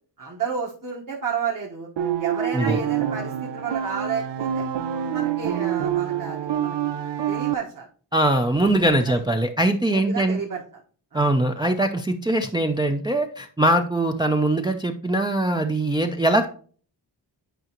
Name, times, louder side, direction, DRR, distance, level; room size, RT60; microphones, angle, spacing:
voice 1, 0.2-1.9 2.2-4.7 5.1-6.9 7.3-7.9 9.0-9.1 9.9-10.6 11.1-11.3, right 6 dB, 50° right, -4 dB, 1.4 m, -31 dB
sound 1, 2.0-7.5, right 9 dB, 70° right, 0.7 m, -26 dB
voice 2, 8.1-10.4 11.1-16.5, right 1 dB, 10° right, 4 dB, 0.5 m, -22 dB
9.1 x 4.8 x 2.9 m, 0.44 s
wide cardioid pair, 90°, 43 cm